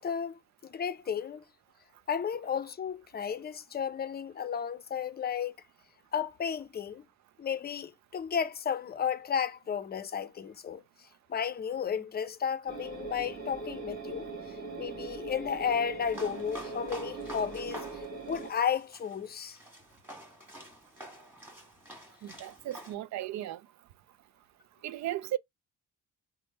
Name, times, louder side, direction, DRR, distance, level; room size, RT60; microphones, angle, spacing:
voice 1, 0.0-1.4 2.1-5.6 6.1-7.1 7.4-10.8 11.3-19.6, left 7 dB, 30° left, 0.5 m, -33 dB
sound 1, 12.7-18.5, right 4 dB, 30° right, 1.4 m, -41 dB
sound 2, 16.0-22.9, equal, 5° right, 1.6 m, -48 dB
voice 2, 22.2-23.6 24.8-25.4, right 13 dB, 65° right, 0.4 m, -35 dB
3.2 x 2.1 x 4.2 m
cardioid pair, 90°, 30 cm